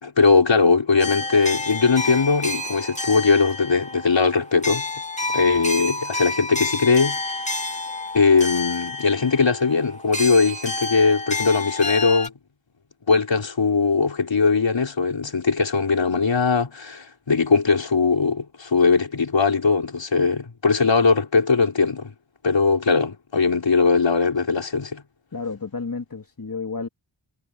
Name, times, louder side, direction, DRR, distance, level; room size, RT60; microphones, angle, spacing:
voice 1, 0.0-4.8 5.3-7.2 8.1-12.3 13.1-22.1 22.4-25.0, left 4 dB, 65° left, 4.3 m, -20 dB
sound 1, 1.0-12.3, left 2 dB, 15° left, 2.4 m, -29 dB
voice 2, 25.3-26.9, left 4 dB, 45° left, 2.9 m, -31 dB
wide cardioid pair, 95°, 49 cm